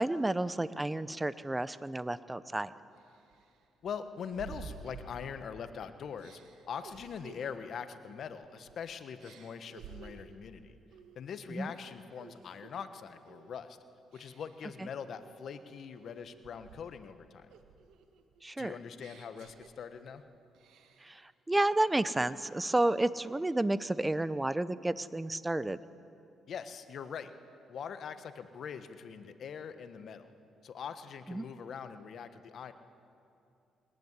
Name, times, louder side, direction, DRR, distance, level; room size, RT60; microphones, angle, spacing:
voice 1, 0.0-2.7 11.5-11.7 14.8-14.9 18.4-18.7 21.0-25.8 31.3-31.4, right 2 dB, 15° right, 15 dB, 0.8 m, -31 dB
sound 1, 2.3-2.4 3.0-5.7 6.2-8.8 9.2-10.4 10.9-11.2 11.5-12.8 13.3-13.6 14.1-14.7 15.2-17.1 17.5-20.2 20.5-21.2, right 6 dB, 85° right, 1.7 m, -53 dB
voice 2, 3.8-6.4 6.7-10.8 11.1-13.8 14.1-17.5 18.6-20.2 26.5-27.3 27.7-30.3 30.6-32.7, left 7 dB, 60° left, 10 dB, 1.3 m, -42 dB
21.5 x 18.5 x 9.7 m, 2.7 s
cardioid pair, 90°, 0 cm